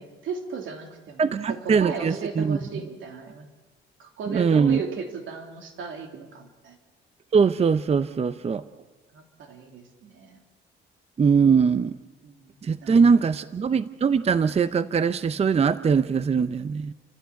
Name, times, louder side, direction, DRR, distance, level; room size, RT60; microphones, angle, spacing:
voice 1, 0.0-3.5 4.0-6.8 9.1-10.4 12.2-12.5 12.8-13.0, right 5 dB, 75° right, 4 dB, 3.0 m, -36 dB
voice 2, 1.2-2.6 4.3-4.8 7.3-8.6 11.2-12.0 12.6-16.9, right 6 dB, 30° right, 13 dB, 0.6 m, -21 dB
30.0 x 15.0 x 7.0 m, 1.3 s
cardioid pair, 90°, 20 cm